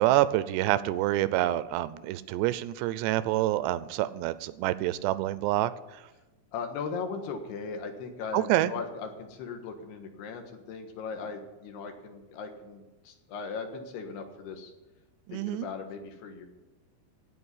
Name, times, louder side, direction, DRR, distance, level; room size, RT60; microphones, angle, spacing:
voice 1, 0.0-5.7 8.3-8.7 15.3-15.7, right 14 dB, 85° right, 15 dB, 2.8 m, -27 dB
voice 2, 6.5-14.7 15.3-16.4, left 5 dB, 75° left, 5 dB, 3.4 m, -38 dB
16.0 x 5.4 x 9.8 m, 1.1 s
omnidirectional pair, 4.9 m